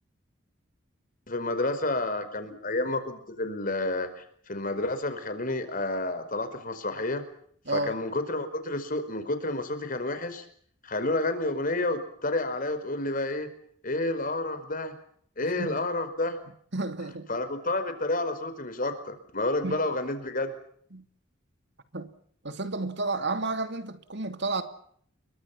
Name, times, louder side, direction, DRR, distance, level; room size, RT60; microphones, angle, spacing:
voice 1, 1.3-7.2 7.7-10.4 10.8-13.5 13.8-14.9 15.4-16.4 17.3-20.5, left 2 dB, 45° left, 4.9 m, -30 dB
voice 2, 16.7-17.3 19.6-19.8 20.9-21.0 21.9-22.1 22.4-24.6, right 3 dB, 60° right, 2.7 m, -31 dB
29.5 x 23.5 x 5.9 m
head